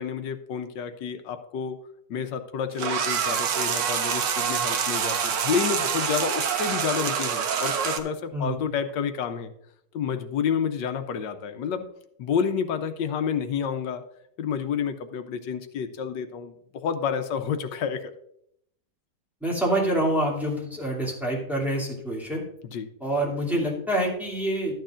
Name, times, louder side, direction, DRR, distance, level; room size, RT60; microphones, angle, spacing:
voice 1, 0.0-1.8 2.1-9.5 9.9-11.9 12.2-14.0 14.4-18.1 22.6-22.9, left 7 dB, 85° left, 9 dB, 1.4 m, -29 dB
sound 1, 2.8-8.0, right 7 dB, 85° right, 1.6 m, -26 dB
voice 2, 19.4-22.4 23.0-24.7, right 1 dB, ahead, -5 dB, 2.6 m, -26 dB
13.0 x 9.2 x 2.5 m, 0.73 s
omnidirectional pair, 1.9 m